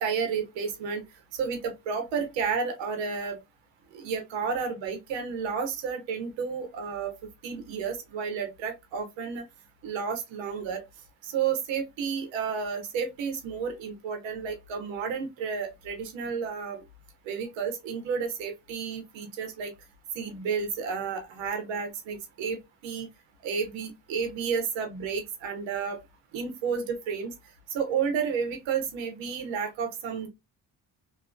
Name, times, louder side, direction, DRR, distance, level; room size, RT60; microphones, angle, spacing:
voice 1, 0.0-1.0 1.3-3.4 3.9-7.1 7.4-9.4 9.8-10.8 11.2-16.8 17.2-19.7 20.1-23.1 23.4-26.0 26.3-27.3 27.7-30.3, right 6 dB, 85° right, 0.8 m, -31 dB
2.6 x 2.4 x 2.2 m
supercardioid pair, 55°, 44 cm